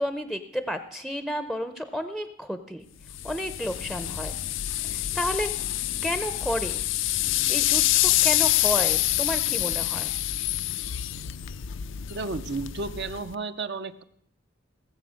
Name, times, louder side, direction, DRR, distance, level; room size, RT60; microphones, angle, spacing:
voice 1, 0.0-2.8 3.2-4.4 4.9-5.5 6.0-6.9 7.5-10.2, equal, ahead, 10 dB, 0.6 m, -31 dB
sound 1, 3.1-13.4, left 14 dB, 60° left, 0.4 m, -26 dB
voice 2, 12.1-14.0, right 3 dB, 55° right, 10 dB, 0.6 m, -32 dB
18.0 x 7.7 x 6.3 m, 0.67 s
head